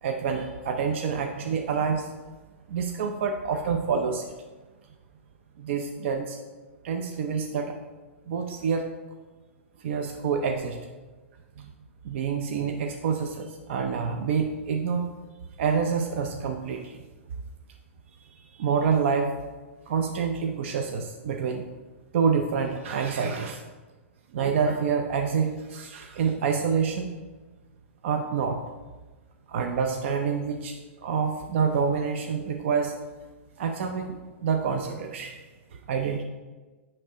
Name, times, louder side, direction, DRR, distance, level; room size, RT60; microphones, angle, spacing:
voice 1, 0.0-2.1 2.7-4.2 5.6-6.4 6.8-7.7 8.3-8.9 9.8-10.8 11.6-11.7 12.0-15.1 15.6-17.0 18.2-19.3 19.9-21.6 22.1-23.6 24.3-27.1 28.0-28.6 29.5-32.9 33.6-35.4 35.9-36.2, right 6 dB, 65° right, 4 dB, 0.6 m, -27 dB
9.9 x 3.3 x 3.7 m, 1.3 s
hypercardioid pair, 130°, 7 cm